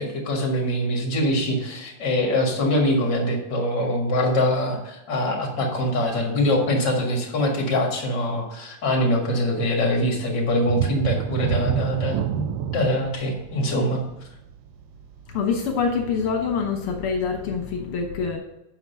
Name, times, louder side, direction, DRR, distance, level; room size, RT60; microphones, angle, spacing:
voice 1, 0.0-12.5 12.7-14.0, left 1 dB, 55° left, 1 dB, 2.5 m, -23 dB
sound 1, 10.6-16.1 16.5-16.7 17.2-17.3, right 9 dB, 75° right, 1.3 m, -28 dB
voice 2, 15.3-18.4, left 5 dB, 75° left, 3 dB, 2.0 m, -25 dB
8.8 x 6.0 x 5.7 m, 0.90 s
omnidirectional pair, 2.4 m